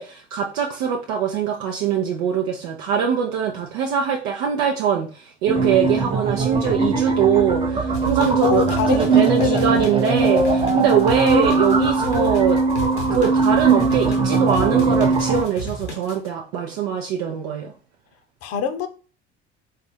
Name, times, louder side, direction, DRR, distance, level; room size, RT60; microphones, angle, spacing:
voice 1, 0.0-12.6 13.1-17.7, right 7 dB, 60° right, 0.6 m, -22 dB
sound 1, 5.5-15.4, right 3 dB, 15° right, 0.7 m, -20 dB
sound 2, 7.9-16.3, right 1 dB, 85° left, 0.8 m, -32 dB
voice 2, 8.4-9.8 18.4-18.9, left 7 dB, 50° left, 0.7 m, -24 dB
3.6 x 2.4 x 4.1 m
figure-of-eight pair, 60°, 32 cm